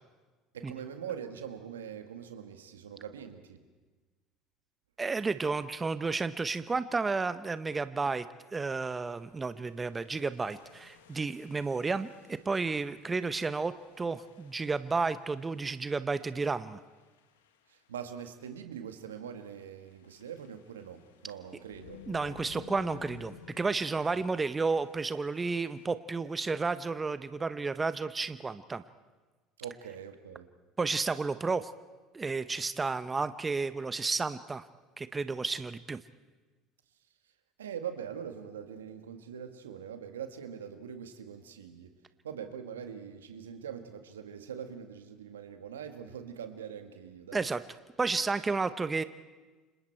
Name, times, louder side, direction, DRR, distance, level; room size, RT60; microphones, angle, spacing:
voice 1, 0.5-3.6 17.7-22.0 24.1-24.2 29.6-30.5 37.6-41.9 42.2-47.5, right 8 dB, 85° right, 7 dB, 1.7 m, -43 dB
voice 2, 5.0-8.2 8.5-16.8 22.1-28.8 30.8-31.7 32.1-34.7 35.0-36.0 47.3-47.6 48.0-49.0, right 4 dB, 20° right, 13 dB, 1.0 m, -32 dB
sound 1, 8.6-17.8 18.7-18.9 19.2-25.9, left 9 dB, 80° left, 1.5 m, -56 dB
29.5 x 26.0 x 4.5 m, 1.3 s
hypercardioid pair, 70°, 0 cm